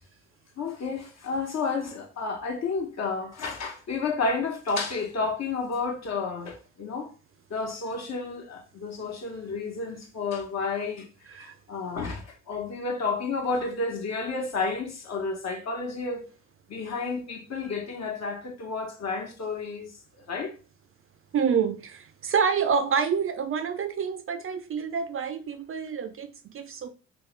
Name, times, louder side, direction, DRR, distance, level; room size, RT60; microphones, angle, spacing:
voice 1, 0.6-7.1 7.5-11.1 11.3-16.3 16.7-19.9 20.3-20.5, left 4 dB, 45° left, 1.1 m, -31 dB
voice 2, 21.3-26.9, right 6 dB, 35° right, 0.5 m, -27 dB
3.0 x 3.0 x 3.2 m
hypercardioid pair, 55°, 36 cm